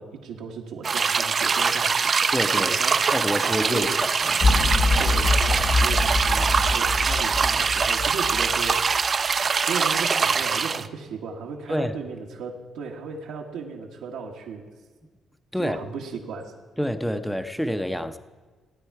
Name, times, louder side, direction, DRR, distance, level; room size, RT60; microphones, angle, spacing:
voice 1, 0.0-3.2 3.4-4.0 5.0-9.0 9.6-14.6 15.6-16.5, right 5 dB, 90° right, -1 dB, 1.3 m, -36 dB
sound 1, 0.8-10.9, right 5 dB, 40° right, 0.4 m, -23 dB
voice 2, 2.3-2.7 3.1-4.3 11.7-11.9 15.5-15.8 16.8-18.2, equal, 5° left, 9 dB, 0.6 m, -27 dB
sound 2, 4.4-8.7, left 3 dB, 50° left, 2.4 m, -24 dB
16.0 x 9.1 x 4.7 m, 1.4 s
cardioid pair, 90°, 0 cm